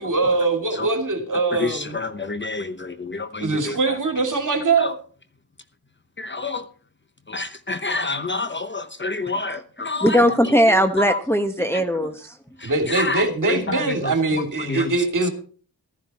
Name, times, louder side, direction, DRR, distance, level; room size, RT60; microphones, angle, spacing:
voice 1, 0.0-2.0 3.4-4.9 12.6-15.3, right 3 dB, 50° right, 2.7 m, -22 dB
voice 2, 1.6-3.8 4.8-4.9 6.2-6.6 7.3-10.2 10.7-11.2 12.6-14.9, left 3 dB, 30° left, 0.9 m, -28 dB
voice 3, 10.0-12.4, equal, 5° left, 1.1 m, -19 dB
14.0 x 10.5 x 4.2 m
cardioid pair, 65°, 40 cm